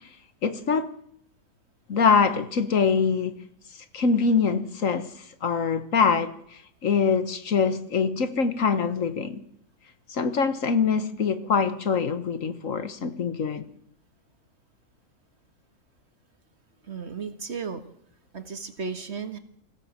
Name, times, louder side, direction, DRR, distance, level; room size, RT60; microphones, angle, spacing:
voice 1, 0.4-0.9 1.9-3.4 3.9-9.4 10.1-13.6, left 5 dB, 65° left, 1.6 m, -24 dB
voice 2, 16.8-17.8 18.3-19.4, right 5 dB, 50° right, 1.9 m, -34 dB
24.5 x 16.0 x 7.6 m
omnidirectional pair, 1.5 m